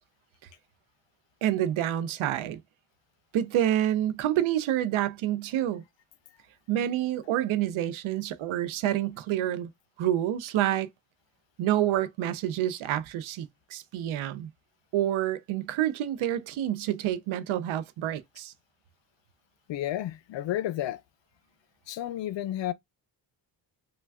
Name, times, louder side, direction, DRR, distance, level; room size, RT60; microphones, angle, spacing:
voice 1, 1.4-2.6 3.3-5.8 6.7-9.7 10.0-10.9 11.6-14.5 14.9-18.5, right 12 dB, 85° right, 0.5 m, -28 dB
voice 2, 19.7-21.0 21.9-22.7, left 13 dB, 70° left, 0.5 m, -31 dB
3.2 x 2.2 x 2.2 m
cardioid pair, 65°, 47 cm